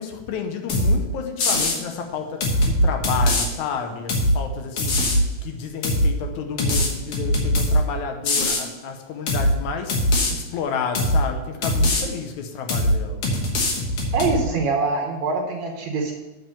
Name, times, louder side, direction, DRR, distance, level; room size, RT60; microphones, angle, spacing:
voice 1, 0.0-5.0 5.4-13.3, left 6 dB, 70° left, 5 dB, 2.1 m, -31 dB
sound 1, 0.7-1.0 1.4-1.8 2.4-3.5 4.1-4.4 4.8-5.2 5.8-6.1 6.6-7.8 8.2-8.6 9.3-9.5 9.9-10.3 10.9-11.2 11.6-12.0 12.7-13.0 13.2-14.4, left 1 dB, 55° left, 1.9 m, -21 dB
voice 2, 14.1-16.1, right 3 dB, 65° right, 1 dB, 2.0 m, -24 dB
7.7 x 4.9 x 6.9 m, 1.1 s
omnidirectional pair, 3.9 m